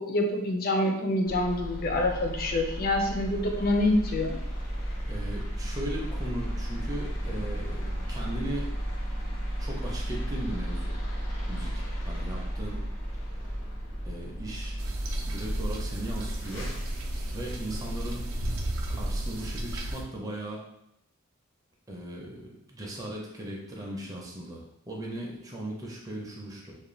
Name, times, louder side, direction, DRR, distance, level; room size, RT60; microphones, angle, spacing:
voice 1, 0.0-4.4, left 1 dB, 45° left, 3 dB, 0.4 m, -26 dB
sound 1, 1.3-19.4, equal, 85° left, 0.8 m, -34 dB
voice 2, 5.1-8.7 9.6-11.0 11.5-12.8 14.1-14.8 15.3-16.7 17.3-18.2 18.9-20.6 21.9-26.8, right 1 dB, 15° right, -3 dB, 0.4 m, -38 dB
sound 2, 14.8-20.0, right 1 dB, 75° right, 0.4 m, -33 dB
2.4 x 2.2 x 3.1 m, 0.79 s
head